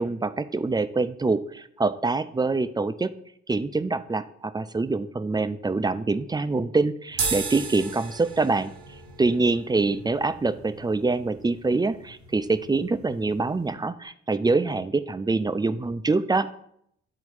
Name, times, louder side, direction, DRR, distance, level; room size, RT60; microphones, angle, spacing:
voice 1, 0.0-3.1 3.5-8.7 9.2-16.5, right 3 dB, 15° right, 12 dB, 0.4 m, -25 dB
sound 1, 7.1-13.7, right 4 dB, 90° right, 2.5 m, -36 dB
9.8 x 4.1 x 4.8 m, 0.70 s
cardioid pair, 90°, 30 cm